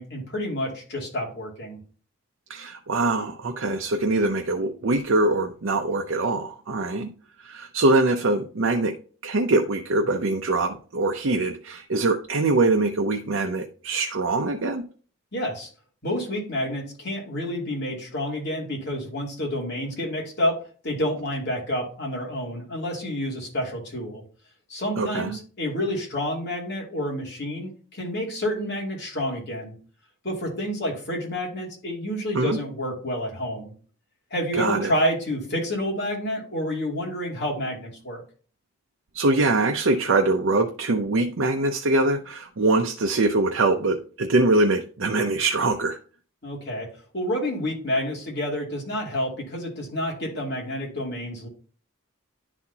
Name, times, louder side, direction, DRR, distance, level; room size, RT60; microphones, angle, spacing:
voice 1, 0.0-1.8 15.3-15.7 16.0-20.6 20.8-24.2 24.7-29.7 30.2-33.7 34.3-38.2 46.4-46.9 47.1-51.5, equal, 50° left, -2 dB, 2.7 m, -29 dB
voice 2, 2.5-7.1 7.4-9.0 9.2-14.8 25.0-25.3 32.3-32.6 34.6-34.9 39.1-46.0, right 2 dB, 65° right, 3 dB, 0.6 m, -23 dB
10.5 x 4.2 x 2.8 m, 0.40 s
head